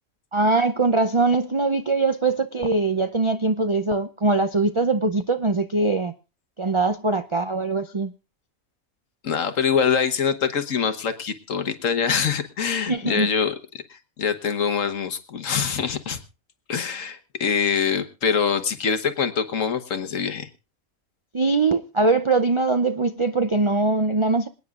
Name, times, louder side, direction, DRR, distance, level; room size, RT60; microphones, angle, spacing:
voice 1, 0.3-6.1 6.6-8.1 12.9-13.3 21.3-24.5, right 3 dB, 50° right, 0.3 m, -22 dB
voice 2, 9.2-16.2 16.7-20.5, left 6 dB, 65° left, 1.5 m, -24 dB
26.5 x 9.4 x 2.4 m
omnidirectional pair, 1.5 m